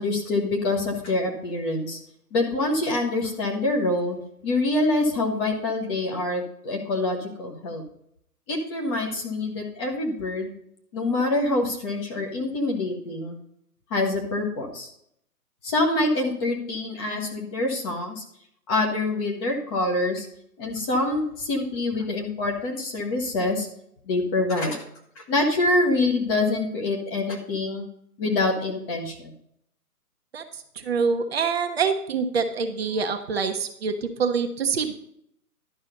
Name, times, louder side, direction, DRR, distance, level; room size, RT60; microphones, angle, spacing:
voice 1, 0.0-2.0 2.3-4.2 4.4-7.8 8.5-10.5 10.9-13.4 13.9-14.9 15.6-18.2 18.7-20.3 20.6-23.7 24.1-24.8 25.2-27.9 28.2-29.3, left 2 dB, 15° left, 2 dB, 1.1 m, -25 dB
voice 2, 30.3-34.9, right 5 dB, 40° right, 6 dB, 1.0 m, -26 dB
11.5 x 5.4 x 5.2 m, 0.71 s
figure-of-eight pair, 145°, 46 cm